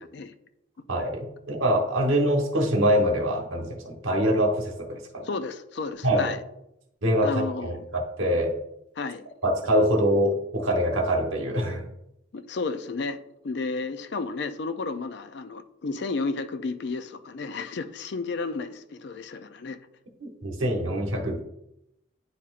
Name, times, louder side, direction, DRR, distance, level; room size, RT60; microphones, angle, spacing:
voice 1, 0.9-5.3 6.0-6.3 7.0-8.6 9.4-11.8 20.2-21.4, equal, 80° right, 2 dB, 1.2 m, -24 dB
voice 2, 5.2-6.4 7.2-7.8 9.0-9.2 12.3-13.2 13.4-19.8, left 3 dB, 55° left, 11 dB, 0.4 m, -32 dB
9.7 x 4.2 x 2.4 m, 0.83 s
head